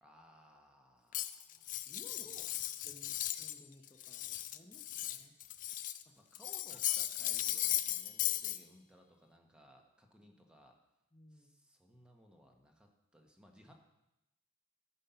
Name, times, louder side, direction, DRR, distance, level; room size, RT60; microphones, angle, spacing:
voice 1, 0.0-1.7 2.1-2.8 6.2-10.8 11.3-13.7, equal, 5° right, 2 dB, 1.2 m, -62 dB
Cutlery silverware, 1.1-3.6 3.9-6.0 6.3-8.6, left 13 dB, 40° left, 0.4 m, -37 dB
voice 2, 1.9-2.3 2.8-5.3 6.1-6.2 11.1-11.5, left 1 dB, 20° left, 1 dB, 0.8 m, -59 dB
13.0 x 5.4 x 5.7 m, 0.90 s
head